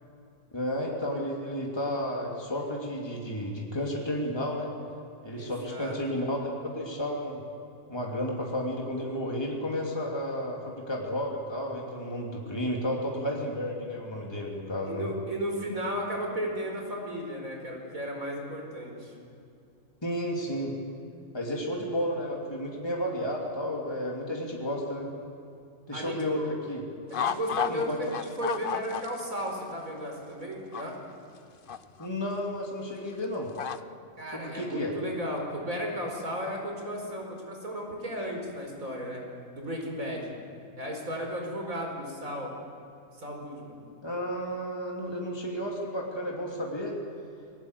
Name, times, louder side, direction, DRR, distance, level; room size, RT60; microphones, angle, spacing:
voice 1, 0.5-4.7 5.2-7.4 7.9-15.1 20.0-20.7 21.3-25.1 25.9-26.8 27.7-28.0 32.0-33.5 34.3-34.9 44.0-47.0, equal, 20° left, -1 dB, 2.9 m, -32 dB
voice 2, 5.3-5.9 14.8-19.1 25.9-26.5 27.1-31.0 34.2-39.2 39.5-40.3 40.8-42.5 43.2-43.8, equal, 85° right, 1 dB, 5.1 m, -34 dB
sound 1, 27.1-27.8 28.1-29.4 29.7-29.8 30.7-30.8 31.7-32.1 33.6-33.8, left 7 dB, 50° left, 0.8 m, -30 dB
28.0 x 19.0 x 8.2 m, 2.5 s
omnidirectional pair, 1.4 m